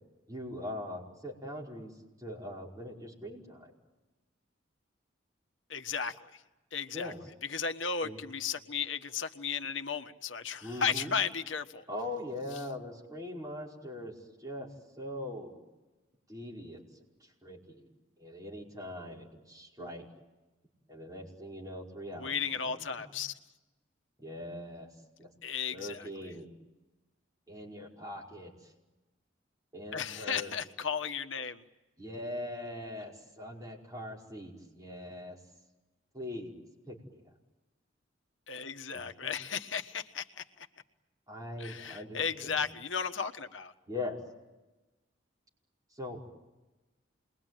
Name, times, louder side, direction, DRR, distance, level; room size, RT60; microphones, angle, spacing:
voice 1, 0.3-1.9 2.2-3.7 6.9-7.2 8.0-8.2 10.6-11.1 11.9-14.7 15.0-15.6 16.3-16.8 17.2-17.9 18.2-20.1 20.9-22.4 22.6-23.2 24.2-24.9 25.2-25.3 25.7-26.5 27.5-28.7 29.7-30.5 32.0-35.4 36.1-36.5 36.9-37.3 38.9-39.3 41.3-42.7 43.9-44.2 45.9-46.2, left 1 dB, 20° right, -3 dB, 5.1 m, -41 dB
voice 2, 5.7-6.4 6.7-7.1 7.5-11.8 19.8-19.9 22.1-23.3 25.4-26.1 29.9-31.6 38.5-40.7 41.6-43.7, left 6 dB, 75° left, 7 dB, 1.3 m, -35 dB
28.0 x 22.0 x 9.2 m, 1.1 s
head